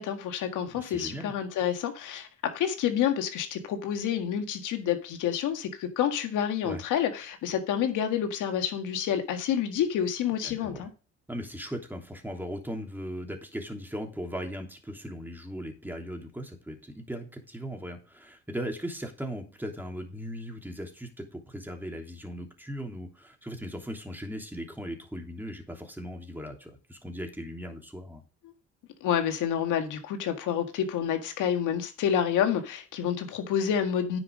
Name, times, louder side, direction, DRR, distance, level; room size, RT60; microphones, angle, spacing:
voice 1, 0.0-2.3 2.5-10.9 29.0-34.2, left 9 dB, 90° left, 1.9 m, -28 dB
voice 2, 0.7-1.3 6.6-6.8 10.4-10.9 11.3-28.2, equal, 5° right, 3.0 m, -38 dB
10.0 x 6.0 x 5.1 m
cardioid pair, 90°, 30 cm